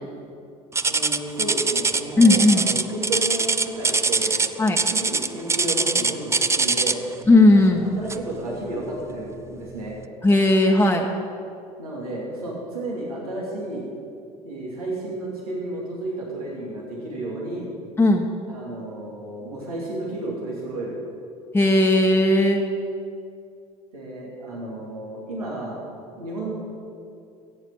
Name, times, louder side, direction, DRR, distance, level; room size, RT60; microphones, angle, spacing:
sound 1, 0.7-7.1 8.1-8.3 8.9-9.0 9.7-9.8, right 4 dB, 15° right, 0.6 m, -22 dB
voice 1, 0.8-4.4 4.9-7.0 7.5-10.0 11.8-13.8 14.4-17.7 18.5-21.0 23.9-25.8 26.2-26.5, right 1 dB, 85° right, -4 dB, 2.8 m, -32 dB
voice 2, 2.2-2.7 4.6-4.8 7.3-7.9 10.2-11.1 18.0-18.3 21.5-22.7, left 2 dB, 10° left, 0 dB, 1.2 m, -16 dB
14.5 x 8.9 x 7.0 m, 2.5 s
hypercardioid pair, 65°, 18 cm